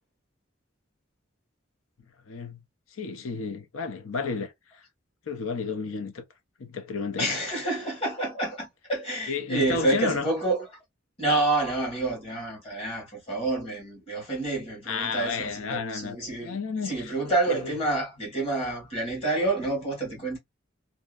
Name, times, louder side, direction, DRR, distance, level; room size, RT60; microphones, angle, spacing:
voice 1, 2.3-2.6 3.0-4.5 5.3-6.2 6.6-7.4 9.3-10.3 14.9-16.2 16.4-17.1 17.5-17.7, left 4 dB, 90° left, 0.6 m, -31 dB
voice 2, 7.2-10.7 11.2-20.4, right 2 dB, 30° left, 1.3 m, -28 dB
2.6 x 2.1 x 2.3 m
head